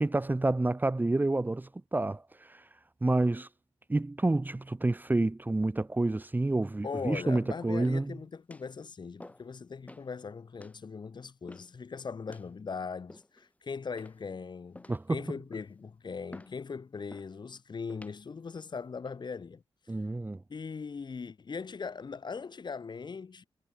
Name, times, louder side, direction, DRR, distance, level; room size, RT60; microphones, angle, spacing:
voice 1, 0.0-2.6 3.0-3.5 3.9-8.1 14.9-15.2 19.9-20.4, right 2 dB, 20° right, 1.4 m, -29 dB
voice 2, 6.8-19.6 20.5-23.4, left 5 dB, 50° left, 6.3 m, -40 dB
sound 1, 7.8-8.1 8.5-8.8 9.2-9.5 9.9-10.1 10.6-10.8 11.5-11.8 12.3-12.5 13.1-13.5 14.0-14.4 14.7-15.1 15.5-15.8 16.3-16.6 17.1-17.4 17.9-18.2 18.8-19.1, left 1 dB, 15° left, 4.5 m, -51 dB
cardioid pair, 90°, 10 cm